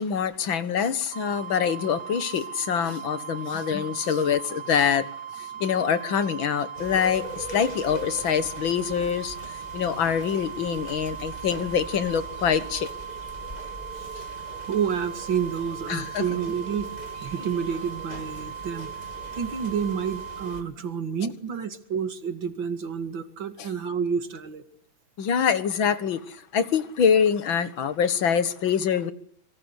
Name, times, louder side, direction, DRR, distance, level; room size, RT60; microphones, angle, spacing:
voice 1, 0.0-12.9 14.2-14.3 15.9-16.2 23.6-23.7 25.2-29.1, left 7 dB, 70° left, 2.2 m, -25 dB
sound 1, 1.1-20.6, right 9 dB, 35° right, 2.2 m, -39 dB
sound 2, 6.8-20.6, equal, 20° left, 2.9 m, -42 dB
voice 2, 14.7-18.9 19.3-24.7, right 7 dB, 65° right, 2.8 m, -29 dB
26.0 x 23.5 x 8.2 m
omnidirectional pair, 2.3 m